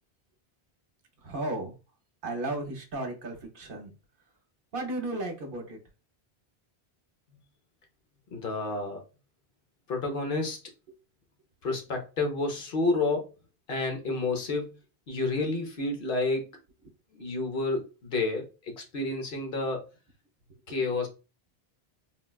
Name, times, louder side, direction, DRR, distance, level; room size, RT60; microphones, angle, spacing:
voice 1, 1.2-1.7 2.2-3.9 4.7-5.8 20.7-20.8, right 2 dB, 60° right, 0.8 m, -34 dB
voice 2, 8.3-9.0 9.9-10.6 11.6-13.3 13.7-14.8 15.1-16.5 17.1-19.8 20.7-21.1, left 3 dB, 60° left, 0.9 m, -30 dB
3.8 x 2.2 x 2.3 m
omnidirectional pair, 1.0 m